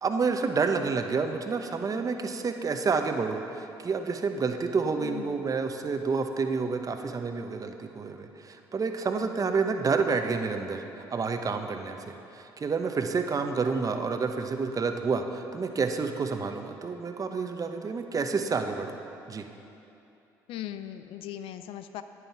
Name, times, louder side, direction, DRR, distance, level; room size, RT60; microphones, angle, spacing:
voice 1, 0.0-18.9 19.3-19.4, right 4 dB, 35° right, 6 dB, 0.9 m, -29 dB
voice 2, 5.0-5.4 20.5-22.0, left 11 dB, 70° left, 10 dB, 0.4 m, -39 dB
9.5 x 9.2 x 6.0 m, 2.8 s
hypercardioid pair, 55°, 10 cm